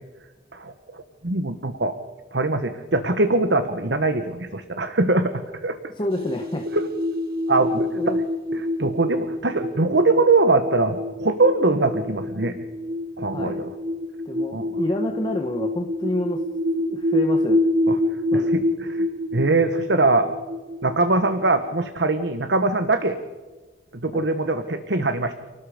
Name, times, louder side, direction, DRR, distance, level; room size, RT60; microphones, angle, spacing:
voice 1, 0.5-1.9 2.3-5.9 6.7-6.8 7.5-8.1 8.5-12.6 13.2-13.7 14.5-14.7 17.9-18.0 18.3-19.0 19.3-20.3 20.8-23.2 24.0-25.3, right 2 dB, 70° right, 8 dB, 1.4 m, -22 dB
voice 2, 6.0-6.7 7.8-8.2 13.3-13.6 14.2-16.4 16.8-17.6 18.3-18.5 24.1-24.3, left 1 dB, 25° left, 3 dB, 1.3 m, -28 dB
eery ambience, 6.1-22.4, left 1 dB, 55° right, 1.0 m, -27 dB
29.5 x 19.0 x 5.1 m, 1.3 s
head